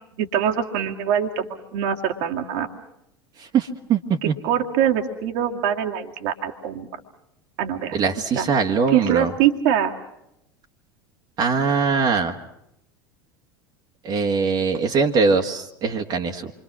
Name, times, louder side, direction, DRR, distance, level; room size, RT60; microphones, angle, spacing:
voice 1, 0.2-2.7 4.2-6.9 7.6-8.0 8.4-8.5 8.9-9.9, right 9 dB, 55° right, 3 dB, 2.3 m, -23 dB
voice 2, 3.4-4.3 7.9-9.3 11.4-12.3 14.0-16.5, right 5 dB, 35° right, 3 dB, 1.9 m, -22 dB
28.0 x 25.0 x 6.2 m, 0.82 s
figure-of-eight pair, 80°, 12 cm